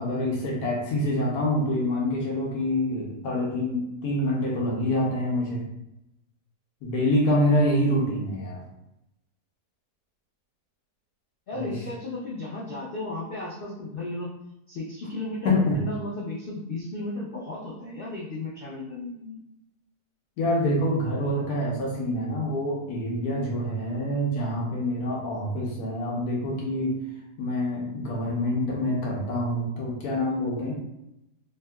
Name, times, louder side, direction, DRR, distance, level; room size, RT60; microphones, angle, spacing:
voice 1, 0.0-5.7 6.8-8.6 11.5-11.8 15.4-15.8 20.4-27.0 27.4-30.7, left 1 dB, 75° left, -3 dB, 1.3 m, -26 dB
voice 2, 11.5-14.3 14.7-19.4, left 2 dB, 90° left, -6 dB, 0.5 m, -34 dB
3.3 x 2.7 x 2.2 m, 0.84 s
omnidirectional pair, 1.7 m